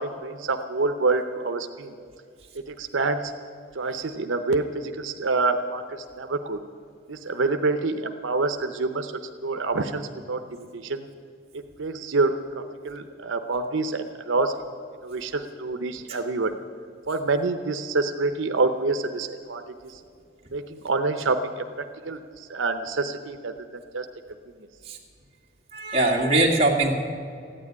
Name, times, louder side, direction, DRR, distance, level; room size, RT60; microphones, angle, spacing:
voice 1, 0.0-1.9 2.5-3.3 3.7-6.6 7.1-9.1 9.4-11.0 11.8-14.5 15.0-16.6 17.1-20.0 20.5-21.6 22.0-23.5 23.9-24.1, right 3 dB, 90° right, 7 dB, 0.7 m, -27 dB
voice 2, 25.7-26.9, right 2 dB, 30° right, -1 dB, 2.1 m, -21 dB
14.5 x 9.8 x 9.6 m, 2.4 s
head